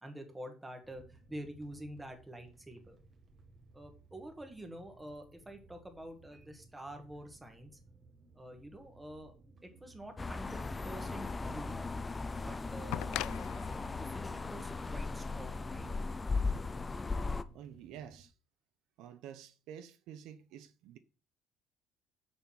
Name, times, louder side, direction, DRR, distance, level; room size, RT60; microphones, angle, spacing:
voice 1, 0.0-3.0 3.7-7.8 8.3-9.3 9.6-11.8 12.4-13.0 13.6-15.9, right 1 dB, 10° right, 1.6 m, -47 dB
sound 1, 0.8-18.2, right 3 dB, 30° right, 1.6 m, -61 dB
sound 2, 10.2-17.4, left 3 dB, 15° left, 0.5 m, -37 dB
sound 3, 12.9-15.8 17.0-17.1, left 16 dB, 75° left, 0.3 m, -42 dB
voice 2, 17.5-18.3 19.0-21.0, right 9 dB, 70° right, 0.9 m, -49 dB
7.0 x 6.6 x 5.8 m
cardioid pair, 165°, 0 cm